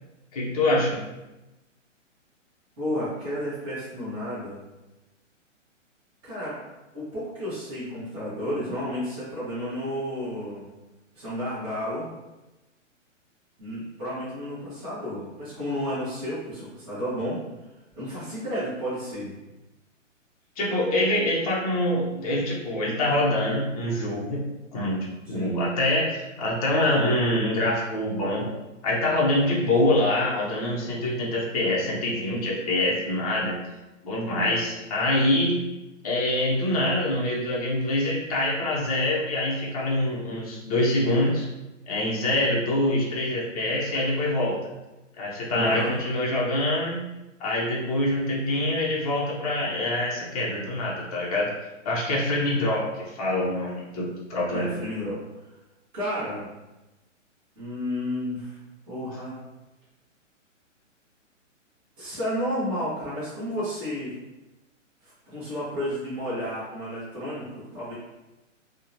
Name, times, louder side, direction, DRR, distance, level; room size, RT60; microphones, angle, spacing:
voice 1, 0.3-1.0 20.6-24.5 24.7-25.0 25.3-28.5 28.8-33.6 34.0-35.7 36.0-41.5 41.9-44.6 45.2-47.1 47.4-51.5 51.8-54.7, left 1 dB, 30° left, -4 dB, 0.5 m, -25 dB
voice 2, 2.8-4.6 6.2-6.6 6.9-10.7 11.1-12.1 13.6-17.4 17.9-19.4 25.3-25.6 45.5-45.9 54.5-55.2 55.9-56.5 57.6-58.6 58.9-59.4 62.0-64.2 65.0-67.9, equal, 10° right, -11 dB, 0.7 m, -32 dB
2.7 x 2.1 x 2.4 m, 1.0 s
hypercardioid pair, 155°, 38 cm